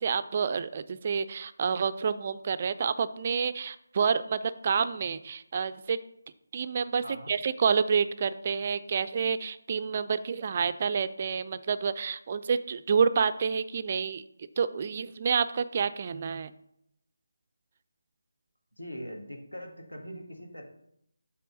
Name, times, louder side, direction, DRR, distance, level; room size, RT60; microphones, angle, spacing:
voice 1, 0.0-6.0 6.5-14.2 14.6-16.5, right 6 dB, 35° right, 12 dB, 0.3 m, -28 dB
voice 2, 7.0-7.3 18.8-20.6, equal, 80° left, 3 dB, 1.5 m, -41 dB
7.6 x 3.1 x 6.2 m, 0.76 s
figure-of-eight pair, 155°, 0 cm